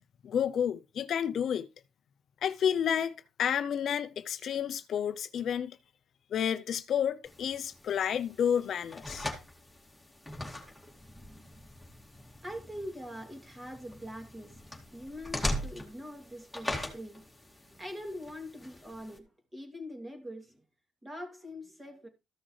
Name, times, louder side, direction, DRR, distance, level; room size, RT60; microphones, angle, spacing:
voice 1, 0.2-1.7 2.4-3.1 3.4-5.8 6.3-9.3, left 8 dB, 65° left, 0.5 m, -30 dB
sound 1, 7.2-19.2, left 1 dB, ahead, 2.3 m, -41 dB
voice 2, 12.4-14.5 14.9-17.3 17.7-20.6 21.0-22.1, equal, 20° right, 2.7 m, -43 dB
14.0 x 6.1 x 3.2 m
cardioid pair, 90°, 0 cm